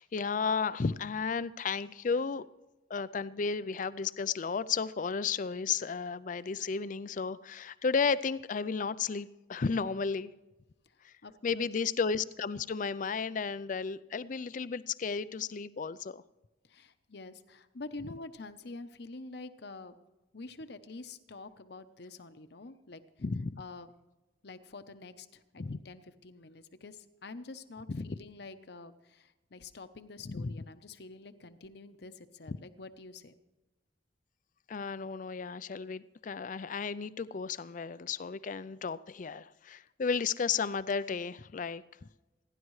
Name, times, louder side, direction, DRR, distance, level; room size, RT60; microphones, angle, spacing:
voice 1, 0.0-2.4 2.9-10.3 11.0-11.1 11.4-16.2 23.2-23.6 25.6-25.8 27.9-28.1 30.3-30.5 32.5-32.6 34.7-42.1, left 5 dB, 45° left, 16 dB, 0.4 m, -33 dB
voice 2, 10.9-11.7 16.6-19.9 20.3-23.0 23.6-23.9 24.4-33.3, left 3 dB, 65° left, 10 dB, 0.9 m, -47 dB
28.0 x 11.0 x 3.2 m, 1.1 s
head